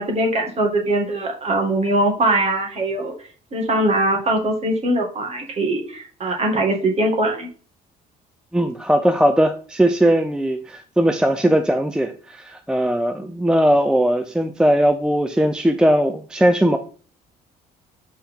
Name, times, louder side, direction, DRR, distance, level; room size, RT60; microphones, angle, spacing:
voice 1, 0.0-3.1 3.5-7.5, right 1 dB, 40° right, 2.0 m, -21 dB
voice 2, 8.5-16.8, right 1 dB, 5° right, 0.5 m, -19 dB
7.3 x 4.3 x 3.7 m
cardioid pair, 110°, 17 cm